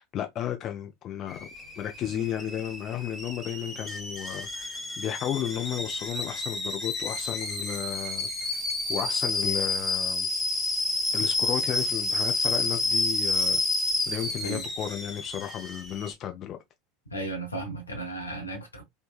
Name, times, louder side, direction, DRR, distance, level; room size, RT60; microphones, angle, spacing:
voice 1, 0.0-1.5 1.8-8.6 8.9-10.3 11.1-13.6 14.1-16.6, left 10 dB, 40° left, 0.4 m, -33 dB
Alarm / Boiling, 1.3-16.1, left 2 dB, 10° left, 1.3 m, -30 dB
voice 2, 17.1-18.8, right 2 dB, 85° left, 0.8 m, -35 dB
3.1 x 2.2 x 2.3 m
figure-of-eight pair, 75°, 0 cm